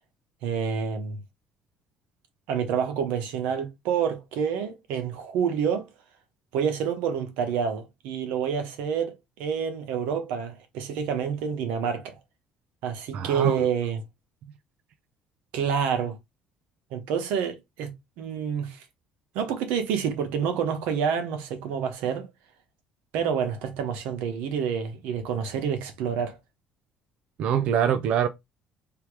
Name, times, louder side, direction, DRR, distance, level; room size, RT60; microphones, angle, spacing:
voice 1, 0.4-1.2 2.5-5.9 6.5-12.1 12.8-14.0 15.5-16.2 16.9-17.9 18.2-18.8 19.3-22.3 23.1-26.4, right 7 dB, 90° right, 1.1 m, -28 dB
voice 2, 13.1-13.7 27.4-28.3, right 9 dB, 55° right, 0.5 m, -24 dB
3.5 x 2.9 x 4.6 m
cardioid pair, 155°, 3 cm